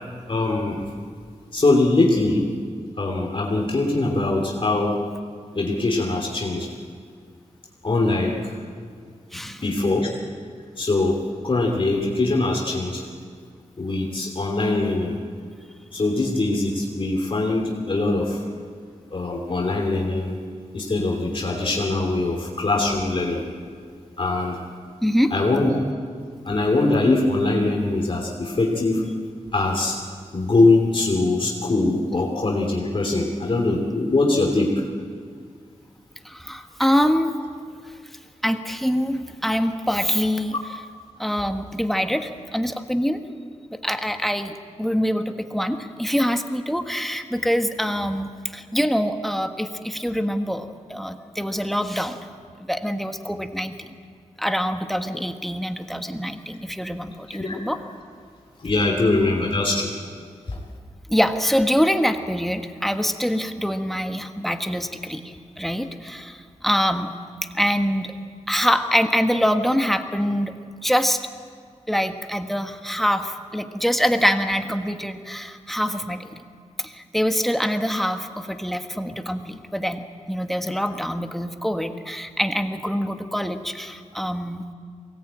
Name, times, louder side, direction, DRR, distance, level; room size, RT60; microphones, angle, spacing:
voice 1, 0.3-0.9 1.5-2.5 3.0-5.0 5.5-6.7 7.8-8.5 9.6-10.1 10.8-11.2 11.4-13.0 13.8-15.1 15.9-18.4 19.1-20.4 20.7-23.4 24.2-24.6 25.3-25.7 26.4-29.0 29.5-30.0 30.3-34.8 57.4-57.6 58.6-59.9 60.5-60.6, left 2 dB, 45° left, -1 dB, 2.8 m, -22 dB
voice 2, 9.3-9.6 25.0-25.3 36.2-37.4 38.4-40.5 41.2-43.2 43.7-52.2 52.7-53.9 54.4-57.8 61.1-67.1 67.5-68.1 68.5-70.5 70.8-71.2 71.9-76.4 76.8-80.0 80.3-84.6, equal, ahead, 6 dB, 1.4 m, -24 dB
22.5 x 18.5 x 8.9 m, 2.1 s
wide cardioid pair, 95°, 12 cm